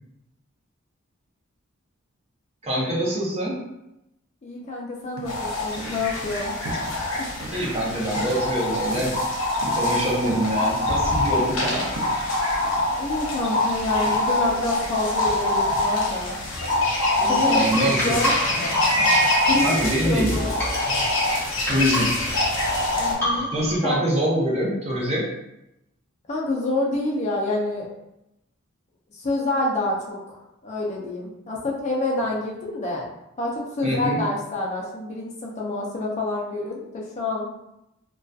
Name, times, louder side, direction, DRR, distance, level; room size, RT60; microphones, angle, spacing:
voice 1, 2.6-3.6 7.5-9.1 9.6-11.9 17.5-18.2 19.6-20.3 21.7-22.1 23.5-25.2 33.8-34.2, equal, 30° right, -4 dB, 0.6 m, -24 dB
voice 2, 4.4-6.5 7.2-7.3 13.0-16.4 17.3-17.7 18.0-18.3 19.5-20.6 23.0-23.5 23.8-24.0 26.3-27.9 29.1-33.1 33.4-37.5, left 2 dB, 35° left, -2 dB, 0.4 m, -27 dB
sound 1, 5.0-11.3 12.0-12.4 12.6-13.0 13.3-13.7 14.0-16.7 17.0-17.6 18.2-18.4 21.4-22.6 23.3-23.7, right 2 dB, 80° right, 0.5 m, -41 dB
sound 2, 5.3-23.1, left 2 dB, 65° left, 0.7 m, -25 dB
sound 3, 16.5-23.8, right 1 dB, 10° left, 1.2 m, -28 dB
2.6 x 2.2 x 2.3 m, 0.88 s
head